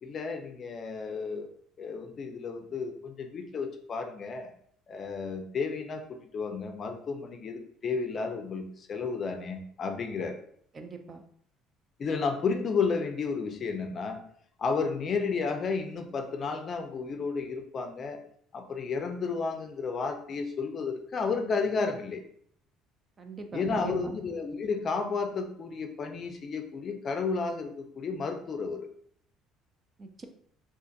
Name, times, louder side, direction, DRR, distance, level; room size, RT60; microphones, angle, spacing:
voice 1, 0.0-1.5 1.8-4.5 4.9-10.4 12.0-14.2 14.6-18.2 18.5-22.2 23.5-28.9, left 4 dB, 35° left, 5 dB, 0.5 m, -32 dB
voice 2, 10.7-11.2 23.2-24.2 30.0-30.3, right 4 dB, 25° right, 6 dB, 0.4 m, -41 dB
2.5 x 2.4 x 3.8 m, 0.62 s
cardioid pair, 135°, 0 cm